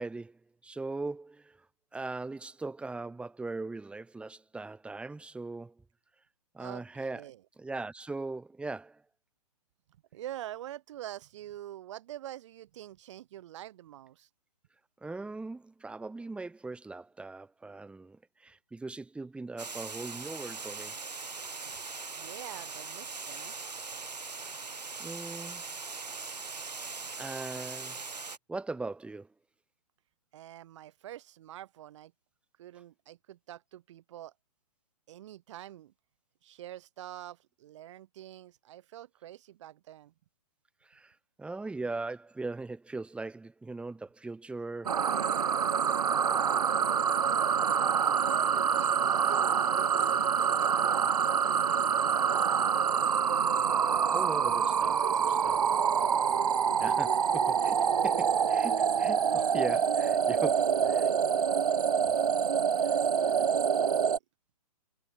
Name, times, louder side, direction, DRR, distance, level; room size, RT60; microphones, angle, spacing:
voice 1, 0.0-1.6 1.9-5.7 6.5-7.3 7.6-9.0 15.0-21.0 25.0-25.6 27.1-28.0 28.5-29.3 40.9-41.1 41.4-45.0 54.1-55.0 55.4-55.6 56.8-61.1 62.8-62.9, right 3 dB, 5° right, 7.0 m, -39 dB
voice 2, 10.1-14.3 22.2-23.5 30.3-32.1 32.6-34.3 35.1-35.9 36.4-40.1 47.0-51.7 52.3-53.2 54.9-55.7 63.1-64.2, right 13 dB, 50° right, 5.6 m, -46 dB
Water, 19.6-28.4, right 4 dB, 85° right, 3.5 m, -41 dB
sound 1, 44.9-64.2, right 7 dB, 65° right, 3.6 m, -26 dB
hypercardioid pair, 135°, 20 cm